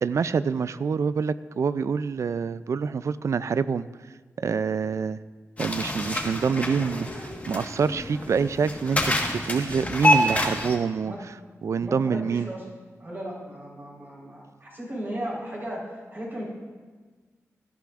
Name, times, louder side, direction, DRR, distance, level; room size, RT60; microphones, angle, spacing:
voice 1, 0.0-3.9 4.4-5.2 5.6-9.1 9.5-11.1 11.6-12.5, right 5 dB, 65° right, 15 dB, 0.3 m, -26 dB
sound 1, 5.6-10.8, left 1 dB, 25° left, 1.4 m, -27 dB
voice 2, 11.8-12.6 13.0-16.5, right 1 dB, 40° right, -5 dB, 4.2 m, -36 dB
17.5 x 11.5 x 2.5 m, 1.4 s
wide cardioid pair, 85°, 6 cm